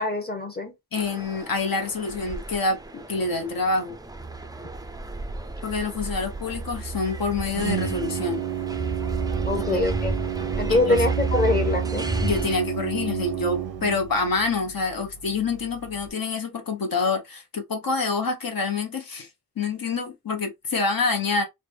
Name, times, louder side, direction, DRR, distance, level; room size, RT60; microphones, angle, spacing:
voice 1, 0.0-0.7 9.5-10.1 10.6-12.1, left 2 dB, 25° left, 0.8 m, -24 dB
voice 2, 0.9-4.0 5.6-8.4 9.7-9.8 10.7-11.1 12.2-19.3 19.6-21.4, left 3 dB, 70° left, 0.9 m, -27 dB
sound 1, 1.0-12.6, right 3 dB, 10° right, 0.3 m, -32 dB
Organ, 5.9-16.1, right 9 dB, 90° right, 0.7 m, -32 dB
3.3 x 2.1 x 3.3 m
wide cardioid pair, 90°, 36 cm